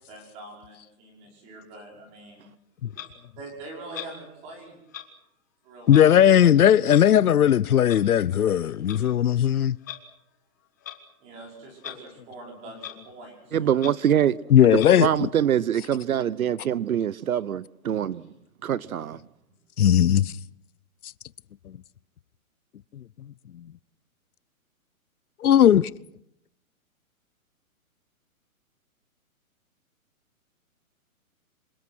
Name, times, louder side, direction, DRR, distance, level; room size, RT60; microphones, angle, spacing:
voice 1, 0.1-2.4 3.4-4.8 5.6-6.5 11.2-13.9 18.1-18.3, right 2 dB, 15° right, 5.6 m, -44 dB
Clock, 2.9-3.1 3.9-4.1 4.9-5.0 5.9-6.0 6.9-7.0 7.9-8.0 8.7-9.0 9.8-10.0 10.8-11.0 11.8-12.0 12.3-12.4 12.8-12.9 13.4-13.5 13.7-13.9 14.7-14.9, left 11 dB, 15° left, 0.9 m, -38 dB
voice 2, 5.9-9.8 14.5-15.3 19.8-20.3 23.5-23.6 25.4-25.9, left 10 dB, 90° left, 0.9 m, -18 dB
voice 3, 13.5-14.4 14.7-18.2 18.6-19.2, right 9 dB, 75° right, 0.9 m, -24 dB
27.0 x 24.0 x 6.3 m
hypercardioid pair, 180°, 43 cm